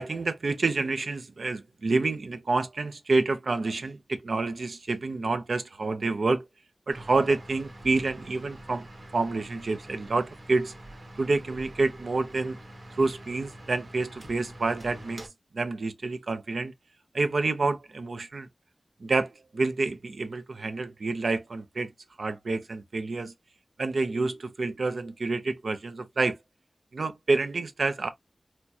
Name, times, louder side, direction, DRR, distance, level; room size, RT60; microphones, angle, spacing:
voice 1, 0.0-6.4 6.9-8.9 9.1-10.7 11.2-12.6 13.0-15.3 15.5-16.7 17.1-18.5 19.0-21.9 22.2-23.3 23.8-26.4 26.9-28.1, right 3 dB, 90° right, 0.5 m, -28 dB
sound 1, 6.9-15.3, right 1 dB, 70° right, 1.3 m, -46 dB
4.3 x 2.2 x 2.7 m
wide cardioid pair, 75°, 0 cm